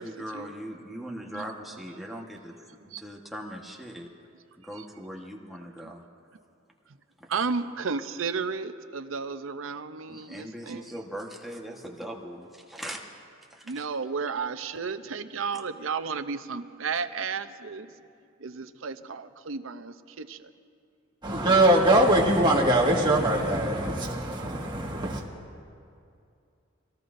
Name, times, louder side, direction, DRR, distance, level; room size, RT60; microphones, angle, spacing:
voice 1, 0.0-4.1 4.5-6.0 7.2-7.4 10.1-13.0 13.5-13.9, equal, ahead, 1.2 m, -40 dB
voice 2, 7.3-10.9 13.6-17.9 18.4-20.5, right 5 dB, 75° right, 0.6 m, -33 dB
voice 3, 21.2-25.2, right 1 dB, 25° right, 1.7 m, -22 dB
24.5 x 18.0 x 2.6 m
head